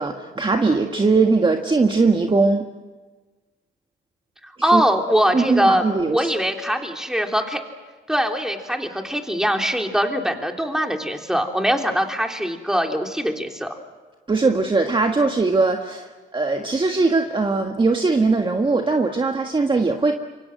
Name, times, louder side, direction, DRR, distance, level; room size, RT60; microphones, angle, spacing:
voice 1, 0.0-2.6 4.7-4.8 5.3-6.3 14.3-20.1, right 3 dB, 25° right, 3 dB, 1.7 m, -20 dB
voice 2, 4.4-5.8 6.1-7.6 8.1-13.8, equal, 5° right, 3 dB, 3.4 m, -22 dB
27.0 x 24.0 x 7.8 m, 1.3 s
cardioid pair, 90°, 20 cm